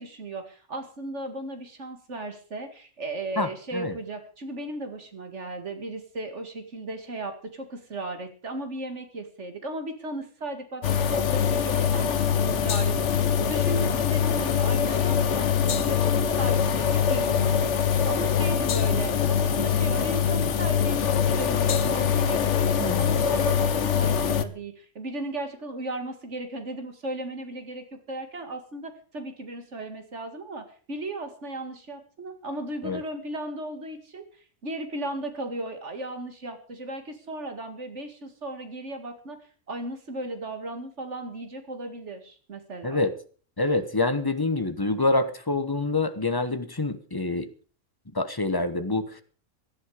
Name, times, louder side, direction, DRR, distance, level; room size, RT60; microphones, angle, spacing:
voice 1, 0.0-34.3 34.6-39.4 39.7-43.0, right 2 dB, 60° right, 7 dB, 2.4 m, -36 dB
voice 2, 3.4-4.0 22.8-23.1 32.8-33.0 42.8-43.1 43.6-47.5 48.1-49.2, left 2 dB, 20° left, 10 dB, 1.1 m, -26 dB
sound 1, 10.8-24.4, left 7 dB, 65° left, 1.2 m, -23 dB
17.5 x 12.0 x 4.9 m, 0.41 s
omnidirectional pair, 1.3 m